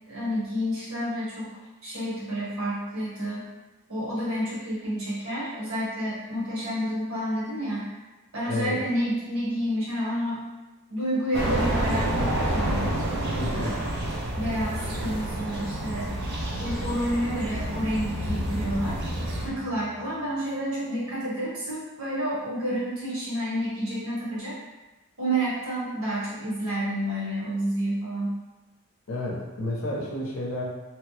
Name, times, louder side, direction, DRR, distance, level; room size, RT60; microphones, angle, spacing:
voice 1, 0.1-1.5 1.8-3.5 3.9-7.9 8.3-10.4 10.9-12.9 13.5-14.0 14.3-16.1 16.6-19.0 19.4-24.6 25.2-28.3, equal, 70° right, -8 dB, 1.2 m, -29 dB
voice 2, 8.5-8.8 13.4-13.8 29.1-30.6, left 1 dB, 65° left, -3 dB, 0.6 m, -31 dB
sound 1, 11.3-19.5, right 1 dB, 50° right, 0.4 m, -29 dB
sound 2, 18.2-20.4, left 1 dB, 30° left, 0.8 m, -37 dB
3.1 x 2.0 x 3.1 m, 1.1 s
head